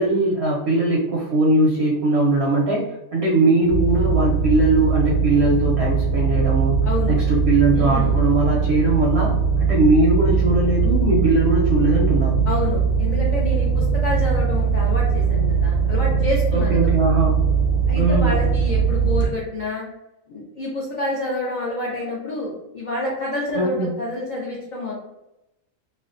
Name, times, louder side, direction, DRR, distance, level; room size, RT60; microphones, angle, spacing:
voice 1, 0.0-6.8 7.1-12.4 16.5-17.5 17.9-18.3 23.5-23.9, right 2 dB, 65° right, -3 dB, 0.6 m, -20 dB
sound 1, 3.7-19.3, right 5 dB, 50° left, 0.8 m, -20 dB
voice 2, 6.8-7.2 7.8-8.2 12.5-16.8 17.9-19.9 20.3-24.9, left 2 dB, 85° left, -5 dB, 0.4 m, -28 dB
2.5 x 2.1 x 2.4 m, 0.92 s
omnidirectional pair, 1.5 m